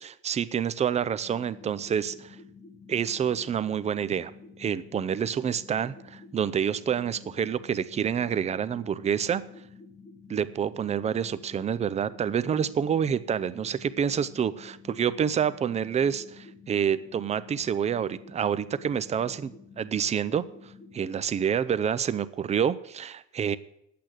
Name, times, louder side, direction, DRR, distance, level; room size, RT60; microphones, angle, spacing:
voice 1, 0.0-2.4 2.9-4.3 4.6-9.4 10.3-20.4 20.9-23.6, right 8 dB, 25° right, 14 dB, 0.5 m, -28 dB
sound 1, 1.2-21.2, left 3 dB, 25° left, 1.3 m, -50 dB
10.5 x 8.5 x 7.7 m, 0.78 s
cardioid pair, 150°, 29 cm